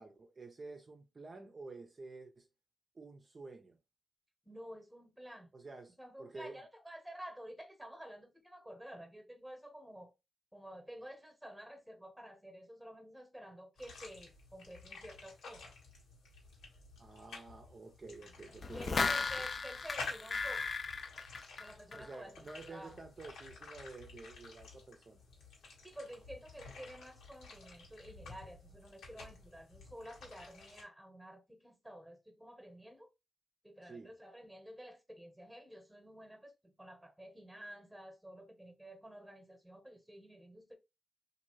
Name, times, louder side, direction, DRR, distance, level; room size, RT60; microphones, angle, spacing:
voice 1, 0.0-2.5 2.9-3.8 5.5-6.6 17.0-19.0 21.9-25.2 33.8-34.1, right 3 dB, 35° right, 0.5 m, -50 dB
voice 2, 4.4-5.5 6.0-10.1 10.5-15.7 18.7-20.7 21.6-22.4 22.7-23.0 25.8-33.1 33.6-40.7, equal, 5° right, 0.9 m, -51 dB
sound 1, 13.8-30.8, left 4 dB, 90° left, 1.3 m, -51 dB
sound 2, 18.6-22.1 22.5-22.6, left 4 dB, 45° left, 0.4 m, -36 dB
2.7 x 2.5 x 3.0 m
cardioid pair, 80°, 0 cm